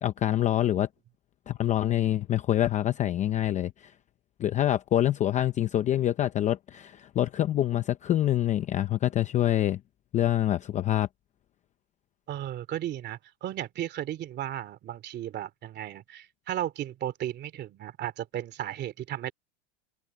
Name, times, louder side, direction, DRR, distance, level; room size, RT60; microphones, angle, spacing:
voice 1, 0.0-0.9 1.5-3.9 4.4-9.8 10.1-11.1, left 12 dB, 20° left, 0.6 m, -26 dB
voice 2, 12.3-19.3, right 12 dB, 30° right, 2.6 m, -35 dB
supercardioid pair, 155°, 36 cm